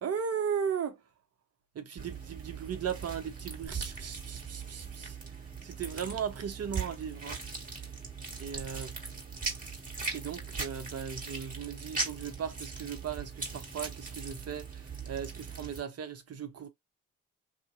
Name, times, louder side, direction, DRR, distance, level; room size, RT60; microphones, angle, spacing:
voice 1, 0.0-1.0 1.7-5.2 5.6-7.4 8.4-9.0 10.1-16.7, right 7 dB, 55° right, 1.0 m, -37 dB
sound 1, 2.0-15.8, right 4 dB, 25° right, 1.8 m, -40 dB
2.9 x 2.7 x 2.5 m
hypercardioid pair, 45°, 30 cm